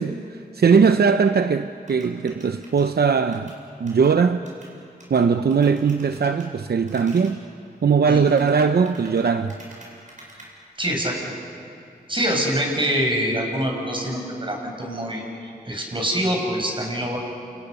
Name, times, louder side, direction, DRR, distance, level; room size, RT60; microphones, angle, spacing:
voice 1, 0.0-3.5 3.8-4.5 5.1-7.4 7.8-9.5, right 5 dB, 75° right, 0.7 m, -20 dB
sound 1, 1.9-4.1 4.5-4.7 5.0-5.2 5.5-6.5 6.9-7.3 8.1-10.5, right 1 dB, 50° right, 7.8 m, -46 dB
voice 2, 10.8-11.2 12.1-17.2, equal, 30° right, 7.3 m, -25 dB
29.0 x 29.0 x 6.8 m
wide cardioid pair, 70°, 16 cm